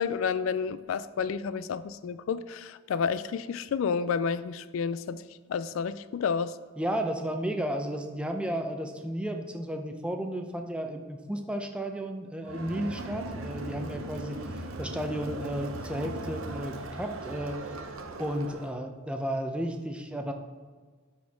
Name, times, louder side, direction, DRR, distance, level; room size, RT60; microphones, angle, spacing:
voice 1, 0.0-6.6, left 6 dB, 70° left, 15 dB, 0.3 m, -30 dB
voice 2, 6.8-17.6 18.2-20.3, equal, 5° right, 4 dB, 0.6 m, -33 dB
Crowd, 12.4-18.7, right 2 dB, 85° right, 0.7 m, -39 dB
12.5 x 4.3 x 3.5 m, 1.5 s
head